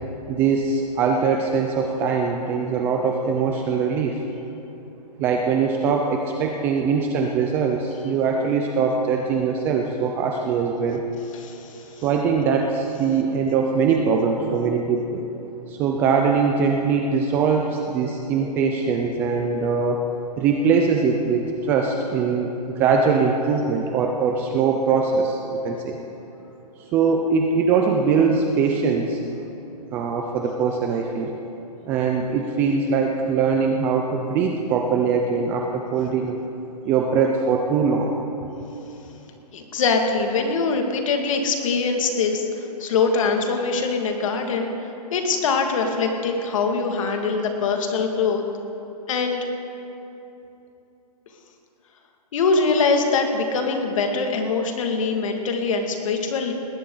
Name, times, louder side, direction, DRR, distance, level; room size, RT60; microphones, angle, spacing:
voice 1, 0.3-4.2 5.2-11.0 12.0-15.2 15.7-20.0 20.4-26.0 26.9-29.2 29.9-31.3 31.9-36.4 36.9-38.1, right 5 dB, 10° right, 2 dB, 0.4 m, -22 dB
voice 2, 11.3-11.8 39.5-44.7 45.1-48.4 49.1-49.5 52.3-56.5, left 4 dB, 50° left, 3 dB, 2.1 m, -23 dB
19.5 x 17.0 x 3.9 m, 3.0 s
hypercardioid pair, 160°, 21 cm